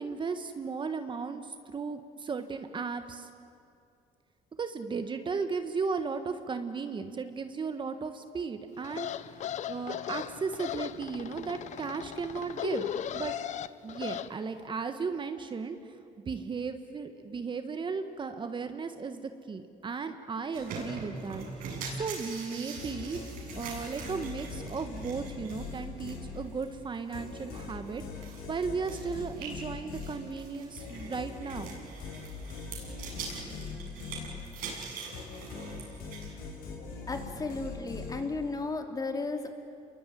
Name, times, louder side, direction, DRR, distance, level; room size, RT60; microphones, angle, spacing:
voice 1, 0.0-3.3 4.6-9.1 9.7-13.3 13.8-15.8 16.2-21.7 22.0-23.2 23.5-31.7, right 5 dB, 35° right, 8 dB, 1.4 m, -35 dB
sound 1, 8.8-14.3, left 10 dB, 55° left, 0.8 m, -37 dB
sound 2, 20.5-36.5, right 4 dB, 85° right, 7.7 m, -44 dB
sound 3, 22.8-26.7 27.1-34.8 35.1-38.6, left 4 dB, 85° left, 5.8 m, -42 dB
voice 2, 37.1-39.5, left 3 dB, 25° left, 4 dB, 3.0 m, -34 dB
28.5 x 22.5 x 9.2 m, 2.4 s
cardioid pair, 110°, 15 cm